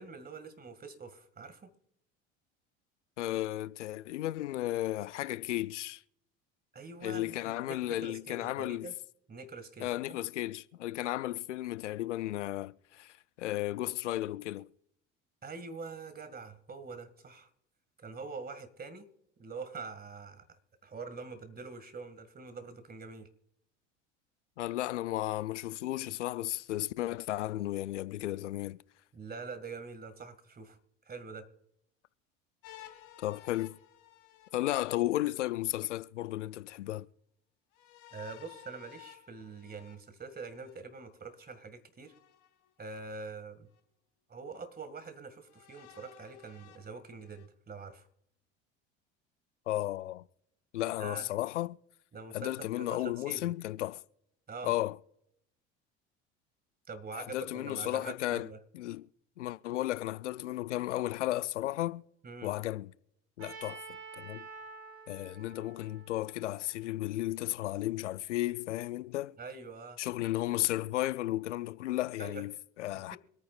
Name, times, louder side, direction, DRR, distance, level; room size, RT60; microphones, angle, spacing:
voice 1, 0.0-1.7 6.7-8.9 9.3-10.2 15.4-17.5 18.0-19.1 19.4-23.3 29.1-31.5 38.1-42.1 42.8-43.7 44.3-48.1 51.0-51.3 52.1-53.5 54.5-54.7 56.9-58.6 62.2-62.5 69.4-70.0 72.2-72.4 72.9-73.0, right 4 dB, 25° right, 2.1 m, -45 dB
voice 2, 3.2-6.0 7.0-8.9 9.8-14.7 24.6-28.8 33.2-33.8 34.5-37.1 49.7-50.2 50.7-51.8 52.3-54.0 54.6-55.0 57.1-58.5 58.7-59.1 59.4-62.0 62.4-62.9 63.4-63.8 64.2-64.5 65.1-69.4 70.0-73.2, left 15 dB, 85° left, 0.5 m, -34 dB
sound 1, 32.6-35.3 37.7-40.8 42.0-43.0 43.7-43.8 45.5-47.5, left 12 dB, 60° left, 2.4 m, -55 dB
Trumpet, 63.4-67.4, right 4 dB, 65° right, 3.8 m, -49 dB
25.5 x 9.4 x 2.5 m
hypercardioid pair, 70°, 35 cm